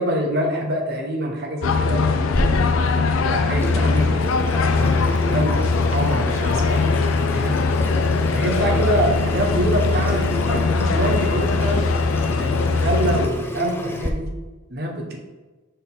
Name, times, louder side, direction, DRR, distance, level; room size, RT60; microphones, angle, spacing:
voice 1, 0.0-2.5 3.2-5.0 5.3-5.6 5.9-7.6 8.3-11.9 12.4-14.3 14.7-15.2, right 1 dB, 50° right, 1 dB, 1.0 m, -25 dB
sound 1, 1.6-13.3, left 4 dB, 75° left, 0.4 m, -21 dB
Water tap faucet / Sink (filling or washing), 2.3-14.1, left 1 dB, 10° left, 0.4 m, -31 dB
6.6 x 3.8 x 3.9 m, 1.2 s
head